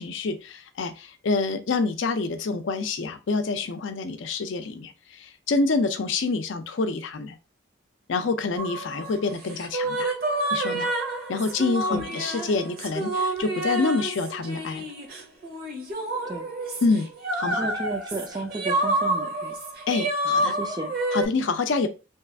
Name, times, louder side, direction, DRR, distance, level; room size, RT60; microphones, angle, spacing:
voice 1, 0.0-7.4 8.1-10.1 10.5-10.9 11.3-14.9 16.8-17.1 17.4-17.7 19.9-20.6 21.1-21.9, left 3 dB, 70° left, 0.5 m, -27 dB
sound 1, 8.6-21.3, right 1 dB, 50° right, 0.8 m, -29 dB
voice 2, 17.4-19.6 20.2-20.9, right 2 dB, 20° right, 0.4 m, -33 dB
2.9 x 2.4 x 3.3 m
head